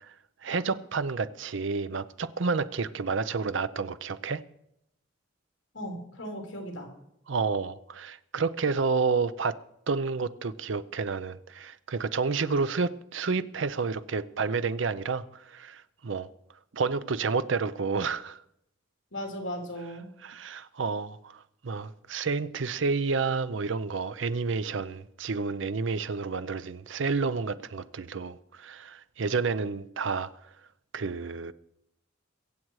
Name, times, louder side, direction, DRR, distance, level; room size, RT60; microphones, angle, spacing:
voice 1, 0.4-4.4 7.3-9.6 9.9-16.3 16.7-18.4 20.2-30.3 30.9-31.5, right 4 dB, 70° right, 0.6 m, -30 dB
voice 2, 5.7-6.9 19.1-20.1, equal, 70° left, 3.4 m, -37 dB
23.5 x 7.8 x 4.8 m
head